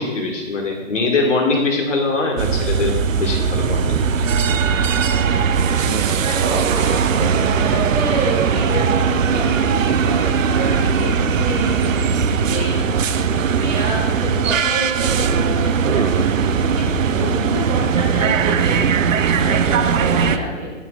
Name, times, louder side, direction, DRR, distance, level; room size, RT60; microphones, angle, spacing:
voice 1, 0.0-4.0, left 3 dB, 65° left, 1 dB, 1.9 m, -22 dB
sound 1, 2.4-20.4, right 6 dB, 75° right, 0.6 m, -19 dB
voice 2, 6.2-20.7, right 1 dB, 20° right, -4 dB, 1.8 m, -28 dB
12.0 x 5.7 x 2.4 m, 1.3 s
figure-of-eight pair, 125°, 39 cm